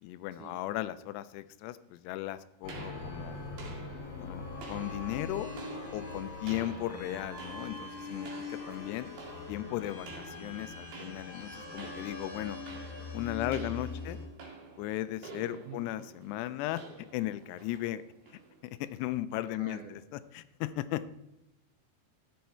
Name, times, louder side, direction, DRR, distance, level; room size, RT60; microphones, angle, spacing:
voice 1, 0.0-3.4 4.2-4.4 4.7-5.5 5.9-9.1 9.5-12.6 13.1-14.2 14.8-18.0 18.6-21.1, left 14 dB, 85° left, 14 dB, 2.7 m, -36 dB
sound 1, 2.6-14.3, left 3 dB, 35° left, 2.7 m, -42 dB
sound 2, 2.7-19.0, right 4 dB, 65° right, 3.7 m, -50 dB
voice 2, 15.5-15.8 19.5-20.0, right 6 dB, 80° right, 4 dB, 1.8 m, -48 dB
14.0 x 7.6 x 4.4 m, 0.87 s
omnidirectional pair, 4.7 m